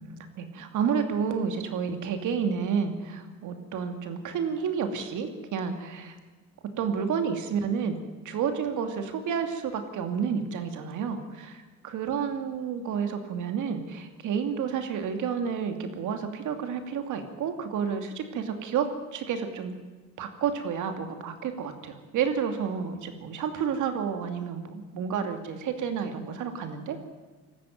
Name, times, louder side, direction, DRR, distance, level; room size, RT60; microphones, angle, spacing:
voice 1, 0.4-6.2 6.8-8.0 8.2-19.7 20.2-27.0, right 7 dB, 80° right, 6 dB, 2.6 m, -30 dB
20.0 x 14.5 x 9.3 m, 1.3 s
cardioid pair, 90°, 30 cm